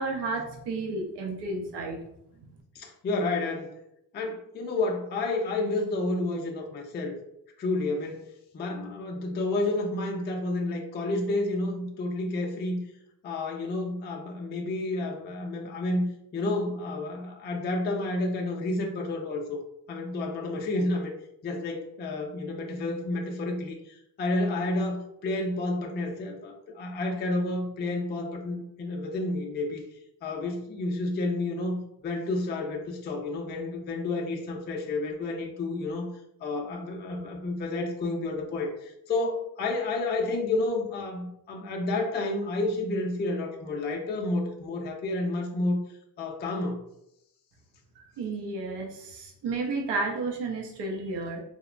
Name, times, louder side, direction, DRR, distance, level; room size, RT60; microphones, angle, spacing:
voice 1, 0.0-2.0 48.0-51.4, right 3 dB, 85° right, 1 dB, 0.6 m, -32 dB
voice 2, 2.7-3.7 4.1-7.2 7.6-8.3 8.5-12.8 13.2-16.1 16.3-19.6 19.9-21.1 21.4-29.8 30.2-36.1 36.4-45.8 46.2-46.8, left 2 dB, 30° left, 1 dB, 0.3 m, -30 dB
2.8 x 2.1 x 2.4 m, 0.79 s
cardioid pair, 110°, 40 cm